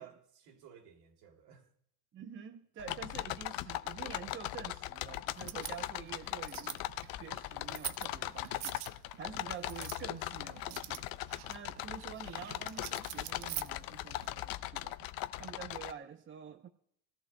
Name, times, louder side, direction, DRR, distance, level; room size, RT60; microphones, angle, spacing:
voice 1, 0.0-1.7 5.2-5.6, right 9 dB, 65° right, 2.7 m, -57 dB
voice 2, 2.1-6.8 7.1-8.8 9.2-11.1 11.5-15.0 15.4-16.7, right 8 dB, 30° right, 0.7 m, -48 dB
sound 1, 2.8-15.9, left 16 dB, 55° left, 0.5 m, -40 dB
sound 2, 5.3-14.3, right 16 dB, 85° right, 0.6 m, -46 dB
21.0 x 14.5 x 2.2 m
cardioid pair, 120°, 42 cm